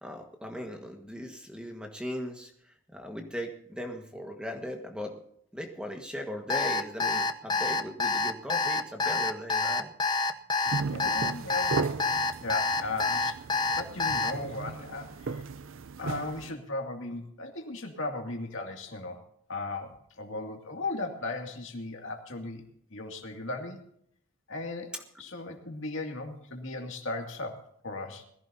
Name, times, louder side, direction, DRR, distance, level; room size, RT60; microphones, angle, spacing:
voice 1, 0.0-2.5 2.9-5.2 5.5-9.9 24.9-25.0, equal, 5° right, 3 dB, 1.5 m, -38 dB
Alarm, 6.5-14.3, left 3 dB, 20° left, 0.6 m, -27 dB
sound 1, 10.6-16.5, right 4 dB, 60° right, 0.5 m, -36 dB
voice 2, 10.8-13.4 13.7-15.5 16.0-19.2 19.5-22.6 22.9-23.8 24.5-28.2, left 2 dB, 60° left, 3 dB, 2.4 m, -37 dB
21.5 x 15.5 x 2.8 m, 0.69 s
head